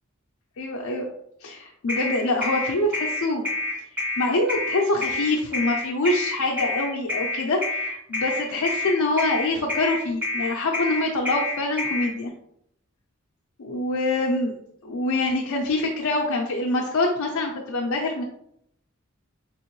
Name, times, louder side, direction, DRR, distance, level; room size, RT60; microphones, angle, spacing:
voice 1, 0.6-1.1 1.4-3.4 4.0-12.3 13.6-14.5 14.8-18.2, left 2 dB, 90° left, 0 dB, 0.5 m, -25 dB
sound 1, 1.9-12.1, left 2 dB, 5° right, 1.0 m, -28 dB
3.5 x 3.0 x 3.0 m, 0.74 s
head